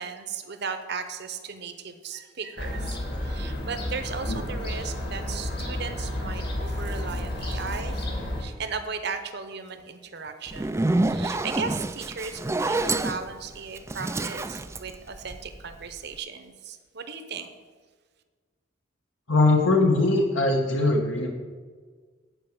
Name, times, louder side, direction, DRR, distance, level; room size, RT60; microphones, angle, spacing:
voice 1, 0.0-8.1 8.4-17.5, right 5 dB, 55° right, 8 dB, 0.9 m, -36 dB
Fowl / Gull seagull, 2.6-8.4, left 1 dB, 55° left, 1.8 m, -31 dB
Zipper (clothing), 10.5-15.7, right 2 dB, 15° right, 0.3 m, -27 dB
voice 2, 19.3-21.3, left 2 dB, 70° left, 1 dB, 1.1 m, -21 dB
10.0 x 4.9 x 7.8 m, 1.5 s
head